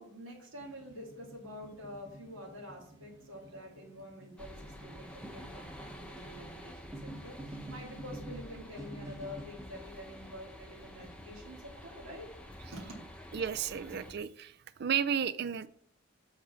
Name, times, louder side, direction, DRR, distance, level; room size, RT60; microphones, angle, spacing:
voice 1, 0.0-12.3 12.7-13.0, left 1 dB, 80° right, -2 dB, 2.2 m, -47 dB
sound 1, 0.6-9.4, right 1 dB, 15° right, 1.1 m, -49 dB
sound 2, 4.4-14.1, left 1 dB, 5° left, 0.7 m, -49 dB
voice 2, 13.3-15.7, right 8 dB, 50° right, 15 dB, 0.4 m, -33 dB
7.9 x 4.0 x 6.9 m, 0.65 s
head